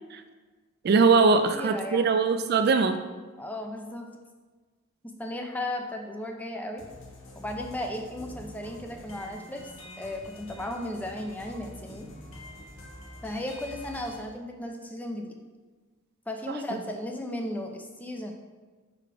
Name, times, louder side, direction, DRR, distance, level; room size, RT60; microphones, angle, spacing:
voice 1, 0.8-3.0 16.5-16.6, right 4 dB, 50° right, 9 dB, 0.3 m, -21 dB
voice 2, 1.5-2.1 3.4-4.1 5.2-6.8 7.4-9.6 10.0-12.1 13.2-15.4 16.3-18.3, left 1 dB, 10° left, 2 dB, 0.5 m, -35 dB
sound 1, 6.8-14.2, left 1 dB, 75° left, 1.2 m, -46 dB
5.2 x 4.8 x 4.7 m, 1.4 s
head